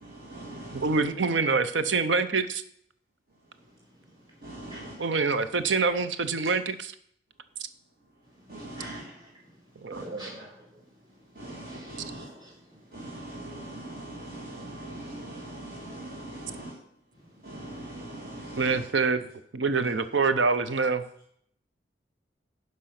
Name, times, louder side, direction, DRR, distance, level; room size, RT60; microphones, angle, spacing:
voice 1, 0.0-1.0 4.4-4.9 8.5-9.0 9.9-10.0 11.4-12.3 12.9-16.7 17.4-18.8, right 1 dB, 55° right, -4 dB, 2.1 m, -41 dB
voice 2, 0.7-2.6 5.0-6.9 9.8-10.3 18.6-19.3 19.5-21.0, right 4 dB, 90° right, 12 dB, 0.7 m, -26 dB
voice 3, 4.7-5.1 8.8-9.3 10.0-10.7 11.7-12.8, right 1 dB, 25° right, -4 dB, 4.0 m, -46 dB
10.5 x 5.4 x 5.8 m, 0.69 s
head